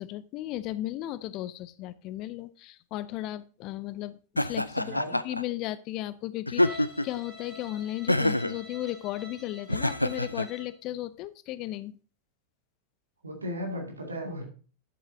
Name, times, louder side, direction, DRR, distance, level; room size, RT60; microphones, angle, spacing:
voice 1, 0.0-11.9, left 14 dB, 40° left, 17 dB, 0.5 m, -35 dB
Laughter, 4.4-5.4 6.5-7.2 8.1-8.6 9.7-10.5, left 1 dB, 85° left, 0.3 m, -26 dB
voice 2, 4.8-5.2 13.2-14.4, equal, 80° right, 1 dB, 2.3 m, -35 dB
Bowed string instrument, 6.6-10.8, left 2 dB, 20° left, 2.7 m, -47 dB
11.0 x 7.4 x 2.8 m, 0.37 s
figure-of-eight pair, 90°, 0 cm